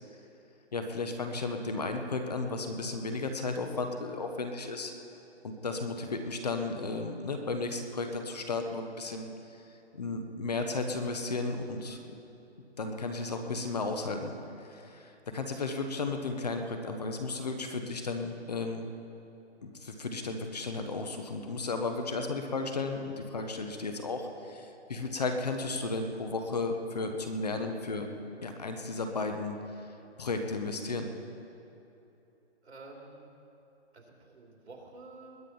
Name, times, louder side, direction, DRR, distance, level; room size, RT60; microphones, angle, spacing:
voice 1, 0.7-4.9 5.4-9.6 9.9-12.0 12.8-18.9 19.6-28.1 28.4-29.9 30.2-31.1, left 3 dB, 35° left, 5 dB, 1.0 m, -34 dB
voice 2, 32.6-33.3 33.9-35.4, right 3 dB, 75° right, 0 dB, 3.0 m, -50 dB
20.5 x 8.7 x 5.5 m, 2.9 s
hypercardioid pair, 170°, 34 cm